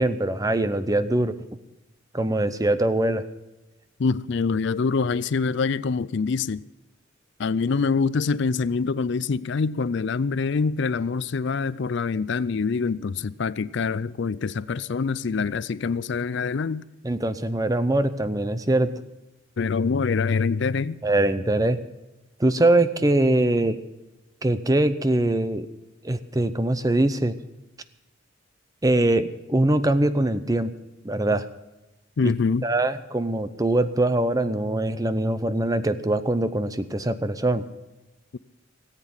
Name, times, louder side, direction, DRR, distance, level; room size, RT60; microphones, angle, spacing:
voice 1, 0.0-1.4 2.1-3.2 17.0-18.9 21.0-21.8 22.4-23.8 24.4-25.7 26.0-27.4 28.8-30.7 31.0-31.5 32.2-32.3 32.6-37.7, right 1 dB, 15° right, 0.6 m, -22 dB
voice 2, 4.0-6.6 7.4-16.8 19.6-21.0 32.2-32.7, left 4 dB, 60° left, 0.4 m, -25 dB
17.5 x 8.3 x 7.2 m
head